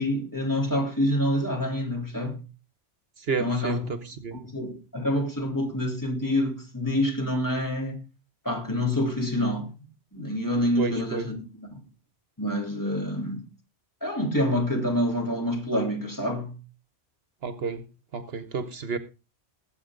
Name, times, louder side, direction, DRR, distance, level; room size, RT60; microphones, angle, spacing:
voice 1, 0.0-2.4 3.4-4.0 4.3-8.0 8.5-9.7 10.1-11.8 12.4-13.4 14.0-16.6, left 1 dB, 15° left, 3.5 m, -27 dB
voice 2, 3.3-4.4 10.8-11.3 17.4-17.8 18.1-19.0, right 4 dB, 65° right, 1.2 m, -31 dB
18.5 x 8.3 x 3.8 m
omnidirectional pair, 1.1 m